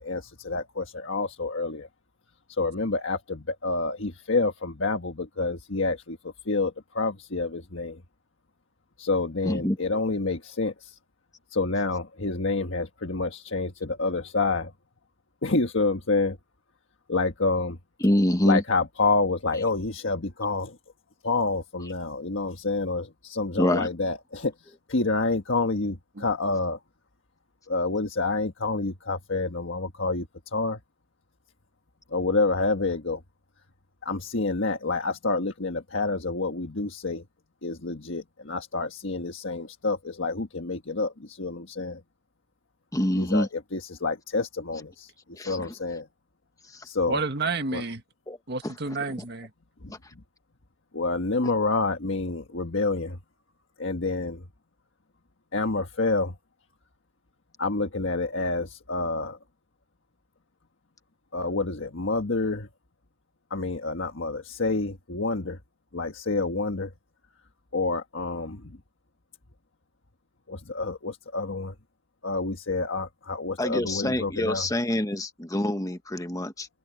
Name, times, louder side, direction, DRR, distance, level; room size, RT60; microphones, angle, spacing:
voice 1, 0.0-1.9 2.5-8.0 9.0-11.0 11.5-14.7 15.4-16.4 17.1-17.8 18.4-20.8 21.2-26.8 27.7-30.8 32.1-33.2 34.0-37.2 37.6-42.0 43.2-45.1 45.4-46.1 46.8-47.2 47.7-47.8 49.8-49.9 50.9-53.2 53.8-54.4 55.5-56.3 57.6-59.4 61.3-62.7 63.5-65.6 65.9-66.9 67.7-68.8 70.5-71.7 72.2-74.7, left 3 dB, 75° left, 1.5 m, -28 dB
voice 2, 9.4-9.8 18.0-18.6 23.6-23.9 42.9-43.5 45.4-45.7 48.3-48.4 49.9-50.0 73.6-76.7, left 1 dB, 15° left, 1.2 m, -25 dB
voice 3, 47.1-48.0 48.5-49.5, right 3 dB, 55° right, 1.7 m, -30 dB
head